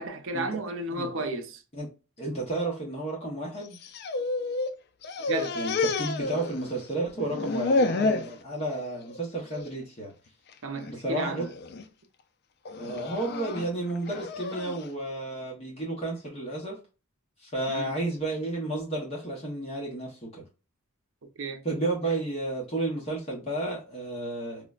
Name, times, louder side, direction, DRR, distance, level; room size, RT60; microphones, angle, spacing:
voice 1, 0.0-1.6 5.3-5.6 10.6-11.5 17.7-18.0 21.4-21.6, right 2 dB, 65° right, 0.6 m, -33 dB
voice 2, 2.2-3.8 5.5-10.1 10.9-11.5 12.8-16.8 17.4-20.4 21.6-24.7, right 2 dB, 30° left, 0.8 m, -32 dB
sound 1, 3.7-4.7 5.0-6.9 7.2-8.3 8.8-9.2 9.5-9.7 10.5-10.9 11.4-11.8 12.7-14.9, left 3 dB, 50° left, 0.4 m, -30 dB
4.6 x 2.1 x 2.3 m
head